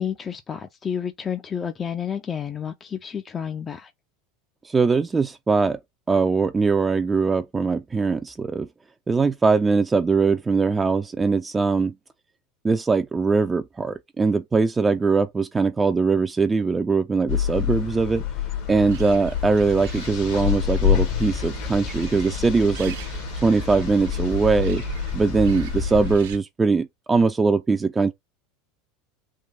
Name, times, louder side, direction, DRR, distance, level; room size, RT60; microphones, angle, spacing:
voice 1, 0.0-3.9, left 8 dB, 30° left, 0.6 m, -30 dB
voice 2, 4.6-5.8 6.1-8.7 9.1-11.9 12.6-18.2 18.7-23.0 23.4-24.8 25.1-28.1, right 4 dB, 20° right, 0.5 m, -21 dB
sound 1, 17.3-26.2, left 8 dB, 60° left, 1.2 m, -27 dB
sound 2, 18.8-26.4, right 7 dB, 70° right, 0.7 m, -37 dB
3.7 x 2.6 x 3.9 m
hypercardioid pair, 80°, 0 cm